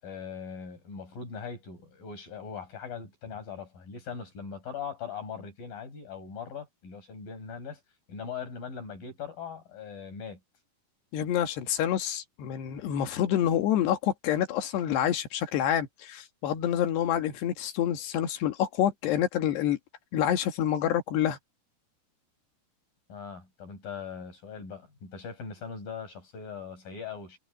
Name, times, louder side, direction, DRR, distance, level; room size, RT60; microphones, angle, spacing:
voice 1, 0.0-7.8 8.1-10.4 23.1-27.4, left 6 dB, 55° left, 7.9 m, -40 dB
voice 2, 11.1-19.8 20.1-21.4, left 10 dB, 85° left, 3.8 m, -27 dB
omnidirectional pair, 4.7 m